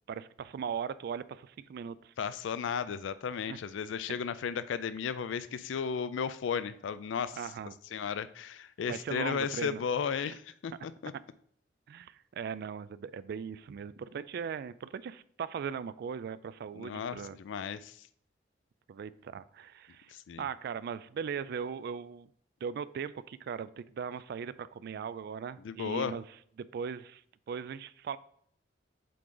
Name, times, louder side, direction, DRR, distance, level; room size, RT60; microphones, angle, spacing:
voice 1, 0.1-2.1 3.5-3.6 7.4-7.8 8.8-9.8 10.2-10.3 11.9-17.4 18.9-20.1 20.4-22.3 22.6-26.3 26.6-27.2 27.5-28.2, right 7 dB, 60° right, 16 dB, 0.3 m, -39 dB
voice 2, 2.2-7.4 7.9-10.7 11.0-11.1 16.7-18.0 20.1-20.4 25.6-26.1, left 6 dB, 80° left, 14 dB, 0.4 m, -34 dB
7.6 x 3.8 x 3.8 m, 0.63 s
head